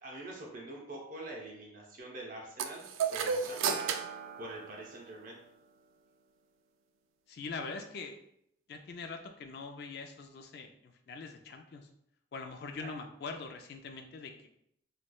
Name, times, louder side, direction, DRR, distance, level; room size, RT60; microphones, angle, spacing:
voice 1, 0.0-3.9 4.4-5.4 12.8-12.9, right 2 dB, 45° right, -1 dB, 0.7 m, -45 dB
sound 1, 2.6-5.3, right 6 dB, 85° right, 0.3 m, -34 dB
voice 2, 7.3-8.2 8.7-11.9 12.3-14.5, left 4 dB, 55° left, 5 dB, 0.3 m, -43 dB
3.2 x 3.0 x 2.2 m, 0.72 s
head